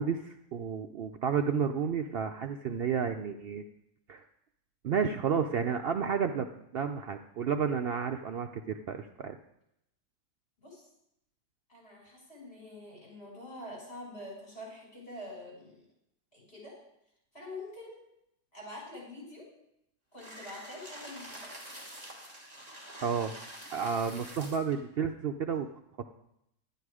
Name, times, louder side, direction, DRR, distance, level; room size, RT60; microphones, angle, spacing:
voice 1, 0.0-3.6 4.1-4.2 4.8-9.4 23.0-23.3 23.7-25.7, right 6 dB, 85° right, 6 dB, 0.5 m, -31 dB
voice 2, 11.7-15.8 16.3-16.8 17.3-18.0 18.5-19.5 20.1-21.5, left 1 dB, 40° left, -4 dB, 6.3 m, -45 dB
sound 1, 20.2-24.7, right 1 dB, 25° right, 2.7 m, -47 dB
11.5 x 10.0 x 4.8 m, 0.80 s
omnidirectional pair, 1.7 m